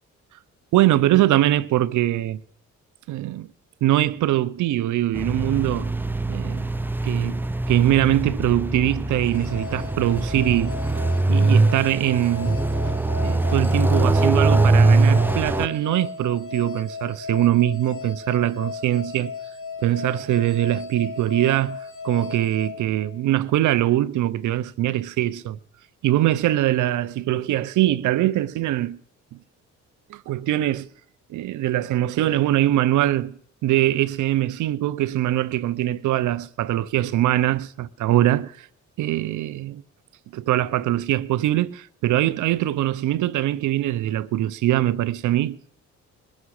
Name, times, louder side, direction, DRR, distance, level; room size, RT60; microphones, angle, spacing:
voice 1, 0.7-2.4 3.1-3.5 3.8-5.9 6.3-6.7 7.0-10.8 11.3-12.6 13.2-19.3 19.8-25.6 26.0-29.0 30.1-30.9 31.3-38.7 39.0-39.8 40.3-45.6, right 14 dB, 80° right, 0.6 m, -22 dB
sound 1, 5.1-15.7, right 3 dB, 5° right, 0.6 m, -22 dB
sound 2, 9.1-23.5, left 5 dB, 45° left, 1.7 m, -36 dB
21.5 x 7.3 x 6.4 m
cardioid pair, 90°, 30 cm